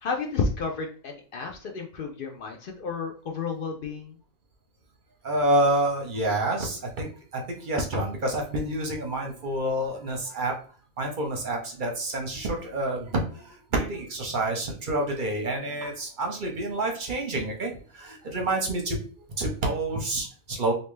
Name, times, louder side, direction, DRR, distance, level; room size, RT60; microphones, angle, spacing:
voice 1, 0.0-4.2, left 4 dB, 65° left, 2 dB, 0.5 m, -31 dB
voice 2, 5.2-10.5 11.0-19.0 19.4-20.7, right 1 dB, 50° right, 1 dB, 0.7 m, -28 dB
3.3 x 2.7 x 3.1 m, 0.41 s
omnidirectional pair, 1.4 m